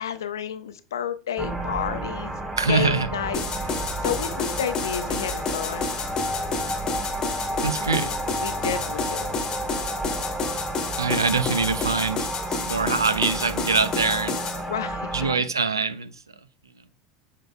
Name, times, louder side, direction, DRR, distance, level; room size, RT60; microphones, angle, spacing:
voice 1, 0.0-2.4 2.7-5.9 8.4-9.3 14.6-15.5, left 8 dB, 70° left, 0.7 m, -31 dB
sound 1, 1.4-15.4, right 1 dB, 10° right, 1.6 m, -31 dB
voice 2, 2.6-3.1 7.6-8.1 11.0-14.4 15.1-16.1, right 4 dB, 85° right, 0.5 m, -24 dB
sound 2, 3.3-14.6, left 5 dB, 35° left, 1.2 m, -30 dB
7.6 x 5.8 x 2.2 m
figure-of-eight pair, 80°, 2 cm